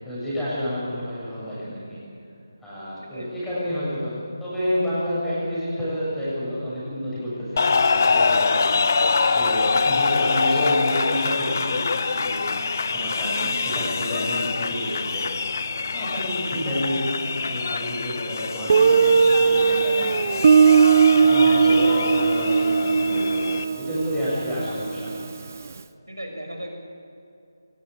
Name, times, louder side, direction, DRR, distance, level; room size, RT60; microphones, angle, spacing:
voice 1, 0.0-2.0 2.6-15.3 15.9-20.7 21.2-25.5, equal, 5° left, -10 dB, 7.3 m, -30 dB
voice 2, 3.1-3.4 21.4-22.0 26.1-26.7, right 1 dB, 85° right, 2 dB, 6.2 m, -35 dB
sound 1, 7.6-23.6, left 4 dB, 45° left, 1.0 m, -25 dB
Guitar, 18.7-25.4, right 6 dB, 35° right, 0.6 m, -18 dB
22.0 x 20.0 x 8.6 m, 2.7 s
figure-of-eight pair, 155°, 2 cm